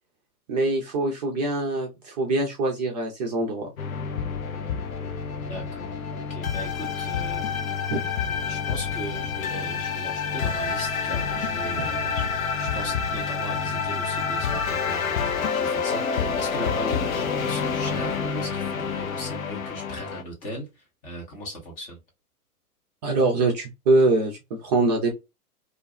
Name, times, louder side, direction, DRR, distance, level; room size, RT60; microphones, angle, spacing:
voice 1, 0.5-3.7 7.9-8.0 23.0-25.1, right 2 dB, 30° right, 0.5 m, -23 dB
sound 1, 3.8-20.2, left 6 dB, 60° left, 0.6 m, -28 dB
voice 2, 5.5-7.6 8.5-12.3 12.6-22.0, equal, 15° left, 0.7 m, -38 dB
2.5 x 2.2 x 2.7 m
figure-of-eight pair, 105°, 46 cm